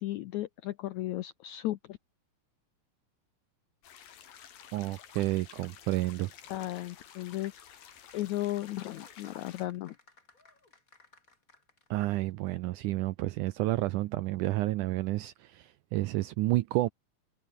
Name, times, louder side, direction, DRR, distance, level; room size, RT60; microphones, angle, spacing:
voice 1, 0.0-2.0 6.5-9.9, left 15 dB, 85° left, 1.7 m, -35 dB
sound 1, 3.8-9.7, left 9 dB, 70° left, 4.0 m, -52 dB
voice 2, 4.7-6.3 11.9-16.9, right 18 dB, 80° right, 1.8 m, -30 dB
sound 2, 7.7-12.2 12.5-12.6, left 3 dB, 20° left, 4.3 m, -61 dB
omnidirectional pair, 4.2 m